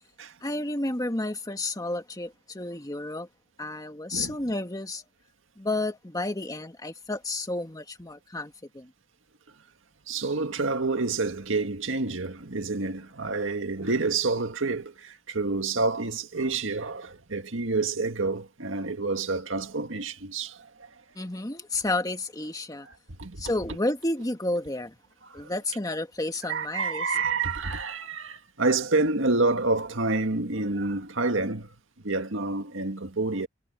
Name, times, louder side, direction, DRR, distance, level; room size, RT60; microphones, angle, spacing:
voice 1, 0.4-3.3 3.6-5.0 5.6-8.9 21.2-22.9 23.4-25.0 25.3-27.1, left 2 dB, 20° left, 1.8 m, -31 dB
voice 2, 10.1-20.7 23.2-23.4 25.3-25.5 26.5-31.7 32.0-33.5, right 3 dB, 85° right, 1.9 m, -28 dB
head